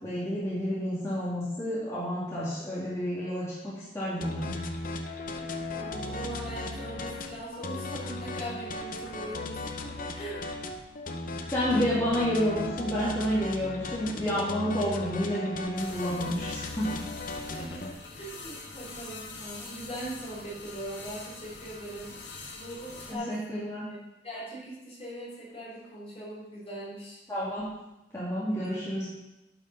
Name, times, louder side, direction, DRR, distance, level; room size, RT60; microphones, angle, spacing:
voice 1, 0.0-4.6 11.5-17.0 23.1-23.8 27.3-27.7 28.1-29.1, equal, 15° left, -11 dB, 2.7 m, -30 dB
sound 1, 4.2-17.9, left 2 dB, 50° left, 0.8 m, -36 dB
voice 2, 5.7-10.5 17.5-23.4 23.9-24.0 24.2-27.2, right 1 dB, 35° left, -7 dB, 3.5 m, -41 dB
sound 2, 15.8-23.1, left 3 dB, 75° left, 1.6 m, -44 dB
10.0 x 5.5 x 5.6 m, 0.94 s
head